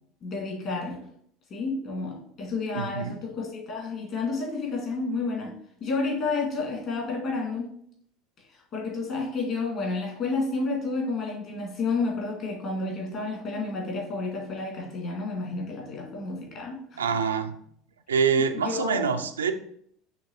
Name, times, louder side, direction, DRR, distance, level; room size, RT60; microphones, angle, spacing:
voice 1, 0.2-1.1 1.5-7.7 8.5-17.0 18.3-19.2, left 3 dB, 45° left, 0 dB, 1.7 m, -31 dB
voice 2, 2.7-3.2 17.0-17.6 18.1-19.5, right 6 dB, 75° right, 8 dB, 0.3 m, -25 dB
5.9 x 3.1 x 2.8 m, 0.66 s
figure-of-eight pair, 70°, 0 cm